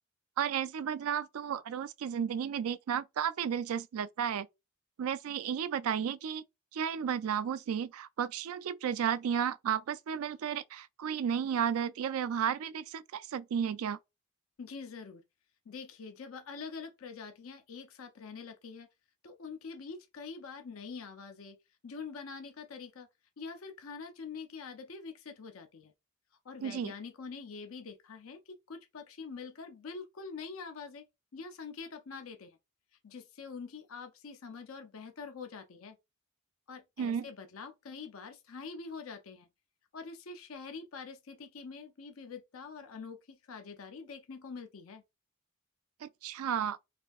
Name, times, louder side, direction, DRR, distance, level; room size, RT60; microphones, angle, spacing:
voice 1, 0.4-4.5 5.0-6.4 6.7-14.0 26.6-26.9 37.0-37.3 46.0-46.8, right 8 dB, 85° right, 0.3 m, -33 dB
voice 2, 14.6-15.2 15.7-18.9 19.2-21.6 21.8-23.1 23.4-25.9 26.4-31.0 31.3-32.6 33.0-36.0 36.7-39.5 39.9-45.0, left 5 dB, 75° left, 0.6 m, -45 dB
4.2 x 2.6 x 2.4 m
head